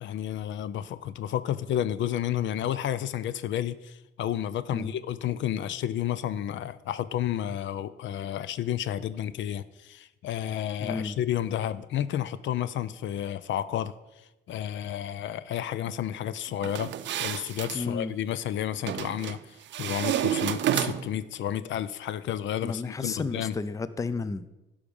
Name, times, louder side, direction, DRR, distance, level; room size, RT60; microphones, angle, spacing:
voice 1, 0.0-13.9 14.5-16.9 17.2-23.6, left 11 dB, 70° left, 15 dB, 0.5 m, -31 dB
voice 2, 10.8-11.1 17.7-18.1 22.6-24.5, left 4 dB, 15° left, 14 dB, 0.4 m, -32 dB
sound 1, 16.6-17.8 18.9-19.4 19.7-21.2, right 11 dB, 65° right, 0.5 m, -29 dB
11.5 x 5.1 x 5.3 m, 0.99 s
cardioid pair, 90°, 20 cm